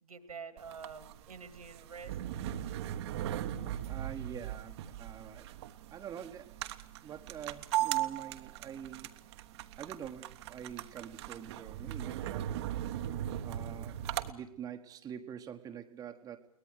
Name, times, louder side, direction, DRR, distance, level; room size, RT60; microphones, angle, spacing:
voice 1, 0.0-2.1, right 5 dB, 75° right, 11 dB, 2.6 m, -47 dB
sound 1, 0.6-14.3, right 12 dB, 45° right, 1.3 m, -38 dB
voice 2, 3.8-5.5 5.9-6.7 7.0-9.2 9.8-12.5 13.4-16.4, right 8 dB, 20° right, 4 dB, 1.3 m, -45 dB
22.5 x 19.5 x 8.2 m, 0.66 s
figure-of-eight pair, 110°, 19 cm